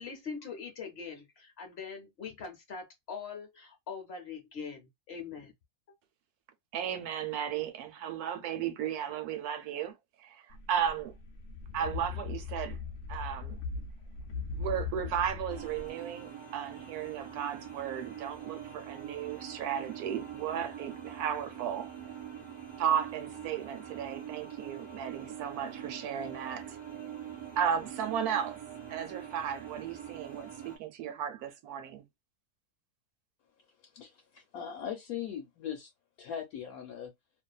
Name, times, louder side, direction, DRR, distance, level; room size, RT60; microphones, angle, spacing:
voice 1, 0.0-5.5, left 5 dB, 55° left, 0.7 m, -42 dB
voice 2, 6.7-9.9 10.2-11.1 11.7-12.8 13.1-13.6 14.6-21.9 22.8-26.8 27.6-28.6 28.9-32.0, right 9 dB, 70° right, 1.0 m, -35 dB
sound 1, 10.5-15.9, left 5 dB, 90° left, 0.5 m, -39 dB
sound 2, 15.5-30.8, right 9 dB, 20° right, 1.2 m, -44 dB
voice 3, 33.9-35.9 36.2-37.1, left 9 dB, 70° left, 1.0 m, -40 dB
2.5 x 2.5 x 2.2 m
omnidirectional pair, 1.7 m